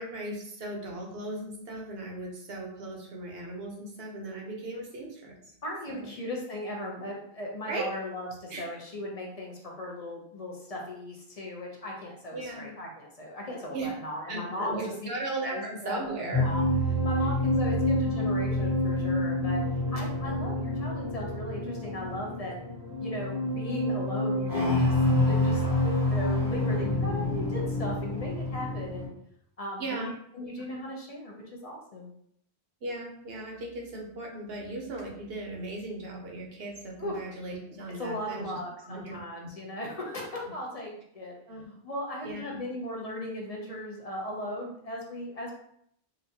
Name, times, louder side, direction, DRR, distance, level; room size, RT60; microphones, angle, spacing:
voice 1, 0.0-5.4 5.9-6.1 7.7-7.9 8.5-8.6 12.3-12.7 13.7-13.9 14.3-16.5 29.8-30.1 30.4-30.6 32.8-38.5 38.8-39.2 41.5-41.7 42.2-42.6, right 2 dB, 65° right, 0 dB, 1.0 m, -37 dB
voice 2, 5.6-14.9 15.4-16.1 16.4-16.6 17.0-19.6 19.9-22.5 23.0-29.1 29.6-32.1 37.0-37.2 38.0-41.3 41.8-45.5, left 1 dB, 40° left, -2 dB, 0.6 m, -37 dB
sound 1, 16.3-29.1, left 1 dB, 20° right, 0.8 m, -27 dB
4.0 x 2.3 x 2.7 m, 0.71 s
omnidirectional pair, 1.1 m